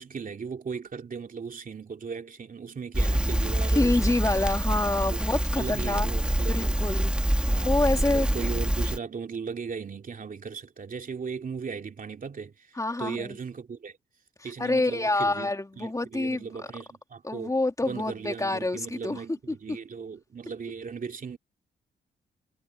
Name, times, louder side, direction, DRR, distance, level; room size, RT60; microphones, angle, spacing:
voice 1, 0.0-4.2 5.1-6.8 7.5-14.0 14.4-15.5 15.8-21.4, right 5 dB, 50° right, 2.8 m, -37 dB
Crackle, 2.9-9.0, right 1 dB, 5° right, 2.3 m, -26 dB
voice 2, 3.7-6.1 6.5-7.1 7.6-8.3 12.8-13.4 14.4-16.5 17.2-19.2 19.5-19.6, left 2 dB, 20° left, 3.2 m, -27 dB
cardioid pair, 70°, 18 cm